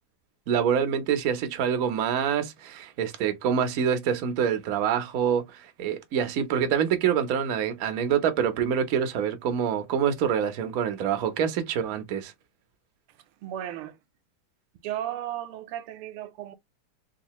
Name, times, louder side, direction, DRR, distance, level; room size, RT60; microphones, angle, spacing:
voice 1, 0.5-12.3, right 8 dB, 65° right, 0.8 m, -26 dB
voice 2, 13.4-14.0 14.8-16.6, right 12 dB, 85° right, 1.5 m, -35 dB
3.8 x 2.4 x 2.9 m
omnidirectional pair, 2.4 m